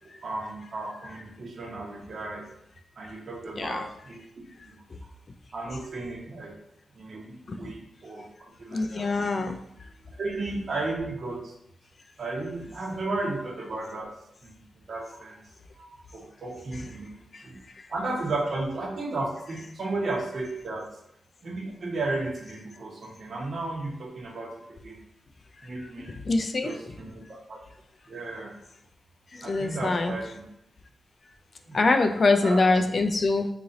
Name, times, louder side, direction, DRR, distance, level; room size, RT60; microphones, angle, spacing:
voice 1, 0.0-2.5 3.0-4.2 4.6-4.8 5.5-6.5 7.0-7.3 7.6-8.3 8.6-9.1 10.2-11.5 12.2-14.1 14.4-14.6 14.9-15.4 15.7-17.1 17.4-17.6 17.9-20.9 21.4-24.5 24.8-25.0 25.6-26.2 26.6-27.6 28.1-28.5 29.4-30.4 31.7-32.0 32.4-32.6, right 2 dB, 60° right, -1 dB, 1.0 m, -34 dB
voice 2, 3.6-3.9 4.9-5.0 7.5-7.7 8.7-9.6 16.7-16.8 17.3-17.4 17.7-17.9 25.8-26.8 29.3-30.1 31.7-33.5, left 3 dB, 55° left, 6 dB, 0.4 m, -25 dB
3.2 x 2.5 x 4.0 m, 0.78 s
cardioid pair, 50°, 0 cm